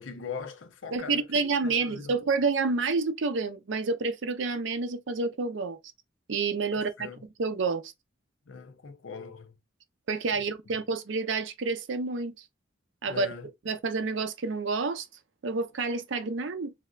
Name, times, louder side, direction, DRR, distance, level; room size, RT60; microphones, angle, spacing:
voice 1, 0.0-2.2 6.7-7.2 8.5-9.5 10.3-10.4 13.1-13.5, left 5 dB, 75° left, 0.6 m, -41 dB
voice 2, 0.9-5.8 6.3-7.1 7.4-7.9 10.1-12.3 13.0-13.3 13.7-15.1 15.4-16.7, right 4 dB, 70° right, 0.5 m, -29 dB
3.2 x 2.7 x 2.3 m
head